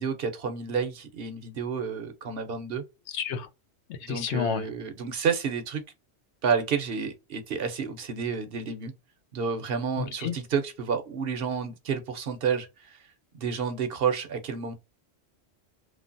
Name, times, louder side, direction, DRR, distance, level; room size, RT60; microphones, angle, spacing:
voice 1, 0.0-2.8 4.0-5.8 6.4-8.9 9.3-13.0 13.3-14.7, right 6 dB, 60° right, 0.7 m, -30 dB
voice 2, 3.1-3.5 4.0-4.6 10.2-10.3, left 7 dB, 75° left, 0.9 m, -29 dB
3.1 x 2.0 x 2.5 m
omnidirectional pair, 1.2 m